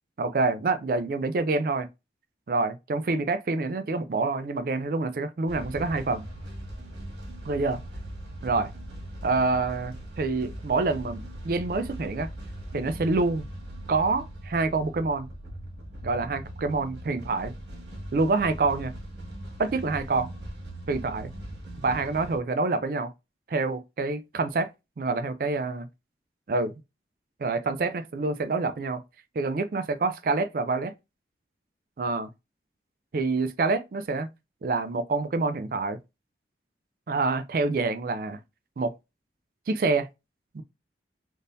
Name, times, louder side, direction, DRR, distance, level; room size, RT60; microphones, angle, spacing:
voice 1, 0.2-1.9 2.5-6.3 7.5-7.8 8.4-8.7 9.2-12.3 12.7-13.4 13.9-15.3 16.0-17.5 18.1-18.9 19.6-20.3 20.9-21.3 21.8-23.1 23.5-24.7 25.0-25.9 26.5-26.7 27.4-29.0 29.4-30.9 32.0-32.3 33.1-34.3 34.6-36.0 37.1-38.4 38.8-38.9 39.7-40.1 40.5-40.6, right 3 dB, 50° right, 0.4 m, -27 dB
sound 1, 5.5-22.4, right 1 dB, 85° right, 1.6 m, -40 dB
3.7 x 2.6 x 2.5 m
head